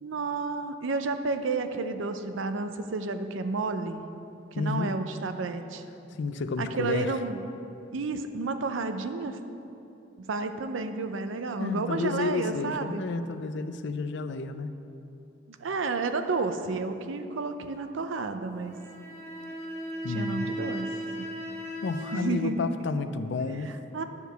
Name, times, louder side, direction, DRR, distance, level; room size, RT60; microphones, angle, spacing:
voice 1, 0.0-4.1 4.5-5.8 6.6-7.4 7.9-9.4 10.2-13.0 15.5-18.8 20.1-21.3 22.1-22.7 23.7-24.0, right 3 dB, 80° right, 8 dB, 0.6 m, -31 dB
voice 2, 4.5-5.0 6.1-7.1 11.6-14.7 20.0-20.5 21.8-23.7, left 3 dB, 65° left, 11 dB, 0.4 m, -31 dB
sound 1, 18.7-22.2, equal, 15° left, 0.7 m, -36 dB
9.8 x 4.7 x 6.7 m, 2.8 s
head